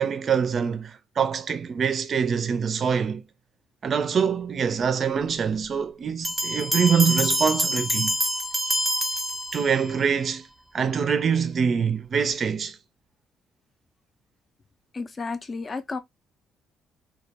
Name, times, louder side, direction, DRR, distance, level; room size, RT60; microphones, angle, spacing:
voice 1, 0.0-3.2 3.8-8.1 9.5-10.5 10.7-12.8, right 6 dB, 50° right, 0.4 m, -24 dB
Bell, 6.2-10.0, equal, 5° right, 0.6 m, -26 dB
voice 2, 14.9-16.0, left 4 dB, 35° left, 0.5 m, -32 dB
2.2 x 2.0 x 2.8 m
supercardioid pair, 70°, 0 cm